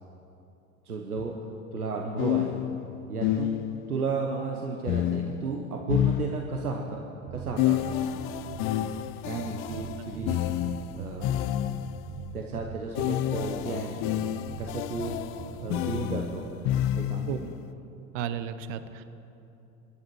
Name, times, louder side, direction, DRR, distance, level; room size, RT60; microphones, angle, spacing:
voice 1, 0.8-1.4 1.7-2.6 3.1-3.6 3.9-8.1 9.2-10.4 10.9-11.3 12.3-14.0 14.6-15.1 15.6-16.4 17.0-17.5, right 4 dB, 85° right, 1 dB, 1.1 m, -33 dB
Crystal Caves (Loop), 1.2-1.3 2.2-4.0 4.9-6.8 7.6-12.1 12.9-17.5, left 12 dB, 30° left, 0.4 m, -29 dB
sound 1, 7.3-16.9, right 6 dB, 35° right, 1.0 m, -42 dB
voice 2, 18.1-19.0, right 9 dB, 55° right, 12 dB, 1.0 m, -33 dB
25.5 x 11.0 x 3.1 m, 2.9 s
figure-of-eight pair, 75°, 44 cm